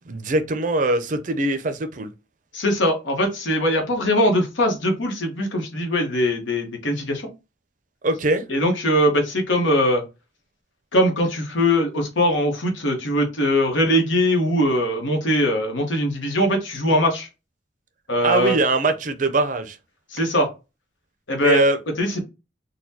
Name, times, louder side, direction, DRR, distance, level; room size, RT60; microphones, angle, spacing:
voice 1, 0.1-2.1 8.0-8.4 18.2-19.8 21.4-21.8, right 2 dB, 45° right, 0.5 m, -22 dB
voice 2, 2.5-7.3 8.5-10.0 10.9-17.3 18.1-18.6 20.1-20.5 21.3-21.6 22.0-22.2, equal, 90° left, 1.1 m, -21 dB
4.1 x 2.2 x 2.7 m
head